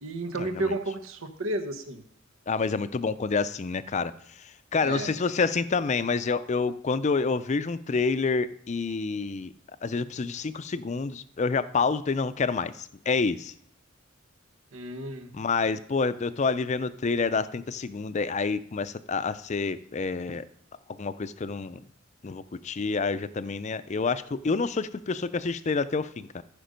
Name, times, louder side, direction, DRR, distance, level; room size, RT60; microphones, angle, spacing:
voice 1, 0.0-2.0 4.8-5.1 14.7-15.4, right 2 dB, 85° right, 7 dB, 1.1 m, -32 dB
voice 2, 2.5-4.1 4.7-9.5 9.8-13.5 15.3-20.4 21.0-21.8 22.2-26.4, left 4 dB, 35° left, 14 dB, 0.4 m, -28 dB
14.5 x 5.2 x 5.2 m, 0.66 s
head